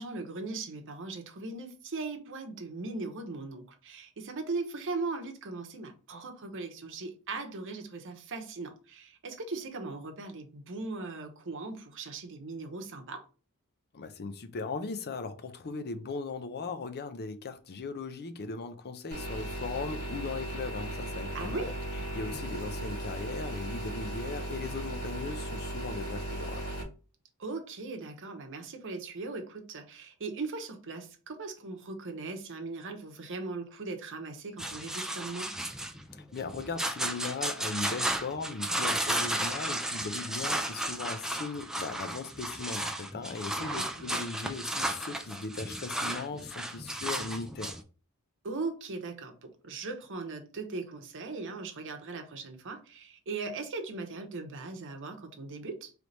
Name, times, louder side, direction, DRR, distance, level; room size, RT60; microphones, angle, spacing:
voice 1, 0.0-13.2 21.3-21.8 27.4-35.5 43.6-44.1 48.4-55.9, right 3 dB, 60° right, 0.9 m, -39 dB
voice 2, 13.9-21.7 22.1-26.7 36.3-47.8, left 4 dB, 45° left, 0.5 m, -38 dB
sound 1, 19.1-26.8, right 1 dB, 80° left, 1.8 m, -37 dB
sound 2, 34.6-47.8, right 1 dB, 5° right, 0.4 m, -34 dB
3.3 x 3.3 x 3.9 m
head